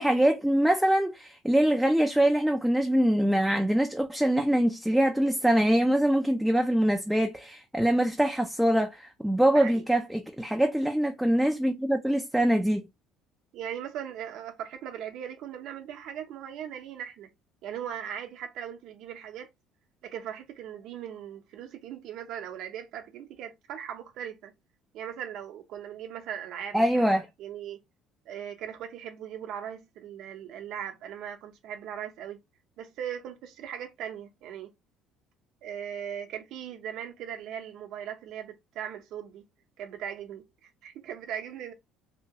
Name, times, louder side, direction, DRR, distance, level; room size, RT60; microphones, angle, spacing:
voice 1, 0.0-12.9 26.7-27.3, right 1 dB, 5° right, 0.3 m, -24 dB
voice 2, 13.5-17.3 17.6-19.5 20.0-24.5 24.9-27.1 27.4-27.8 28.3-32.4 32.8-34.7 35.6-39.4 39.8-41.7, right 9 dB, 60° right, 0.7 m, -39 dB
2.8 x 2.2 x 2.7 m
cardioid pair, 140°, 0 cm